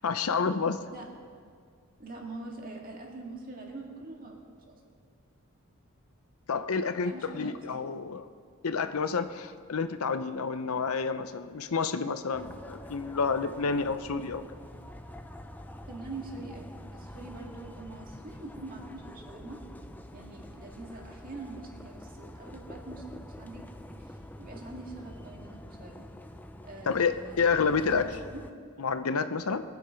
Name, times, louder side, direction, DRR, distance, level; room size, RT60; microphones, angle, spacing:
voice 1, 0.0-0.8 6.5-8.3 8.6-14.4 26.9-28.1 28.8-29.6, left 5 dB, 75° left, 10 dB, 0.6 m, -29 dB
voice 2, 2.0-4.4 4.7-4.8 7.0-7.8 15.9-19.6 20.1-23.6 24.0-26.0 26.6-28.4, right 2 dB, 40° right, 0 dB, 2.0 m, -44 dB
sound 1, 12.3-28.5, left 1 dB, 10° left, 0.4 m, -46 dB
22.0 x 8.4 x 5.1 m, 2.1 s
head